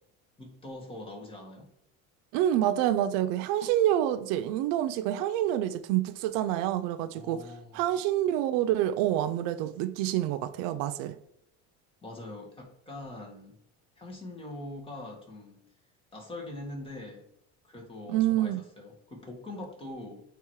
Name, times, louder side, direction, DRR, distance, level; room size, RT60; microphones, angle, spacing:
voice 1, 0.4-1.7 7.1-7.9 12.0-13.6 14.0-15.6 16.1-17.3 17.6-20.2, left 2 dB, 15° left, 1.8 m, -43 dB
voice 2, 2.3-7.4 7.7-11.2 18.1-18.6, right 12 dB, 70° right, 0.6 m, -27 dB
9.0 x 3.1 x 4.7 m
cardioid pair, 140°, 35 cm